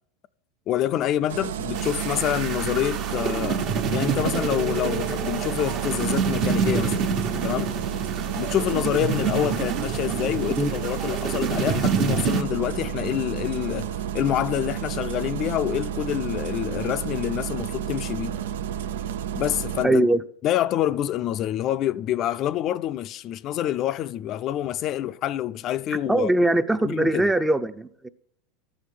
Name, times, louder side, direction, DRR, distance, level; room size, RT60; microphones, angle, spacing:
voice 1, 0.7-7.0 7.4-7.7 8.4-18.4 19.3-20.0 20.4-26.3 26.8-27.3, left 12 dB, 45° left, 0.4 m, -27 dB
Engine starting, 1.3-19.8, right 9 dB, 80° right, 0.4 m, -31 dB
sound 1, 1.7-12.4, right 6 dB, 50° right, 1.3 m, -27 dB
voice 2, 19.8-20.2 26.1-28.1, right 1 dB, 10° right, 0.6 m, -21 dB
13.5 x 6.4 x 7.5 m
hypercardioid pair, 105°, 0 cm